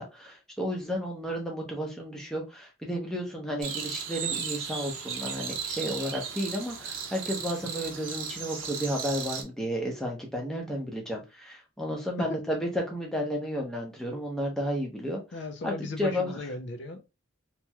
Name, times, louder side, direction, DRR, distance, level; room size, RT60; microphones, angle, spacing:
voice 1, 0.0-15.2 15.6-16.3, equal, 5° left, 0.7 m, -32 dB
sound 1, 3.6-9.4, right 6 dB, 65° right, 0.7 m, -35 dB
voice 2, 15.3-17.0, left 2 dB, 55° left, 0.4 m, -36 dB
2.9 x 2.9 x 2.2 m
head